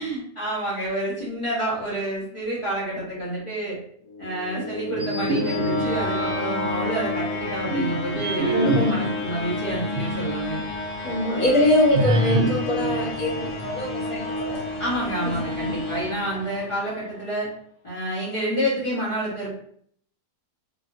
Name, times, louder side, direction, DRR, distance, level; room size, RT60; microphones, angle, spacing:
voice 1, 0.0-3.8 4.2-10.6 14.8-17.5 17.8-19.5, right 1 dB, 25° left, -7 dB, 1.1 m, -28 dB
sound 1, 4.1-17.1, left 2 dB, 85° left, 1.2 m, -30 dB
sound 2, 4.9-6.8 7.4-10.4 10.7-10.8 11.9-14.0, right 2 dB, 65° right, 0.7 m, -27 dB
voice 2, 8.5-9.1 11.0-14.6 15.6-15.7, left 1 dB, 65° left, -3 dB, 1.3 m, -23 dB
2.8 x 2.6 x 2.6 m, 0.64 s
omnidirectional pair, 1.6 m